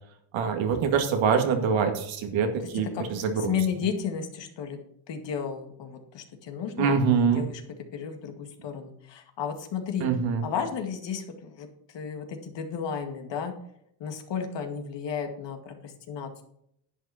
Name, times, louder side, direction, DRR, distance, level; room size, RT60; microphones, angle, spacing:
voice 1, 0.3-3.5 6.8-7.5 10.0-10.4, right 6 dB, 70° right, 5 dB, 2.2 m, -24 dB
voice 2, 3.4-4.8 5.1-7.6 7.9-10.1 10.4-13.5 14.0-16.4, left 7 dB, 60° left, 5 dB, 2.2 m, -33 dB
11.0 x 8.3 x 4.3 m, 0.73 s
cardioid pair, 100°, 48 cm